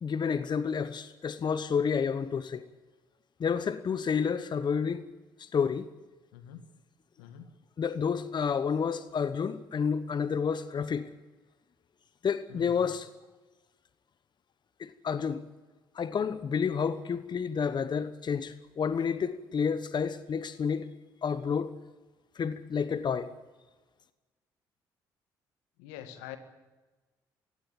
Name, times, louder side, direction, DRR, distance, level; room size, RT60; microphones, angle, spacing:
voice 1, 0.0-2.6 3.4-5.1 5.4-5.9 7.8-11.1 12.2-13.1 14.8-15.4 15.9-20.9 21.2-21.7 22.3-23.3, left 6 dB, 45° left, 1.1 m, -30 dB
voice 2, 6.3-6.6 7.2-7.5 12.5-12.8 25.8-26.4, left 10 dB, 80° left, 1.9 m, -45 dB
24.0 x 16.0 x 8.7 m
hypercardioid pair, 50°, 10 cm